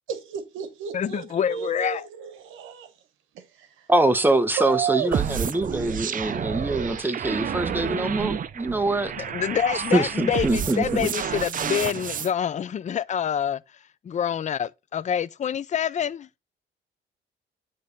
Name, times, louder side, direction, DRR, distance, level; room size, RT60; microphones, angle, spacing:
voice 1, 0.1-2.9 3.3-3.9 4.5-5.2, right 9 dB, 90° right, 1.0 m, -32 dB
voice 2, 0.9-2.1 9.2-13.6 14.0-16.3, left 8 dB, 35° left, 0.4 m, -26 dB
voice 3, 3.9-9.1 9.9-11.1, right 2 dB, 10° right, 1.0 m, -24 dB
sound 1, 5.1-12.3, right 8 dB, 45° right, 0.6 m, -30 dB
9.4 x 3.3 x 3.9 m
cardioid pair, 90°, 20 cm